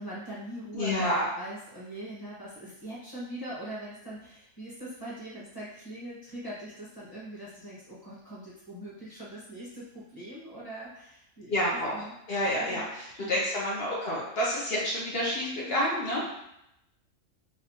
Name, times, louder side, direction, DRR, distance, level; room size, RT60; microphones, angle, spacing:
voice 1, 0.0-1.1 1.4-11.6 11.9-12.1 12.7-13.4 15.4-15.8, right 1 dB, 20° left, -7 dB, 1.0 m, -42 dB
voice 2, 0.7-1.3 11.5-12.0 12.3-16.3, equal, 60° left, -4 dB, 0.8 m, -29 dB
3.4 x 2.6 x 2.7 m, 0.83 s
omnidirectional pair, 1.3 m